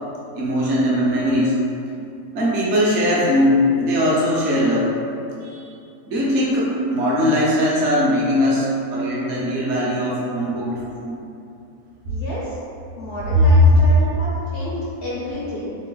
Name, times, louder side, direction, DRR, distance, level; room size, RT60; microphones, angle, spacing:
voice 1, 0.3-1.5 2.3-4.9 5.4-5.7 6.1-11.2 13.3-13.4 13.7-13.8, equal, 55° right, -6 dB, 1.0 m, -20 dB
voice 2, 12.1-12.6 13.0-15.7, equal, 70° left, -7 dB, 0.5 m, -30 dB
3.2 x 2.4 x 3.7 m, 2.6 s
omnidirectional pair, 1.6 m